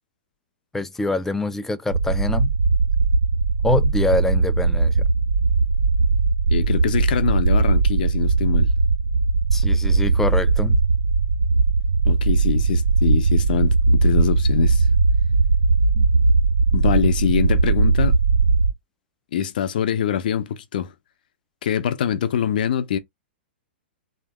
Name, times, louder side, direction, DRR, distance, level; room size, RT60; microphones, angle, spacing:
voice 1, 0.7-2.5 3.6-5.1 9.5-10.8 16.0-16.1, left 2 dB, 5° left, 0.4 m, -25 dB
sound 1, 1.9-18.7, right 3 dB, 65° right, 0.5 m, -19 dB
voice 2, 6.5-8.7 12.0-14.8 16.7-18.2 19.3-20.9 21.6-23.0, left 9 dB, 50° left, 0.7 m, -24 dB
3.4 x 2.8 x 3.6 m
figure-of-eight pair, 110°, 6 cm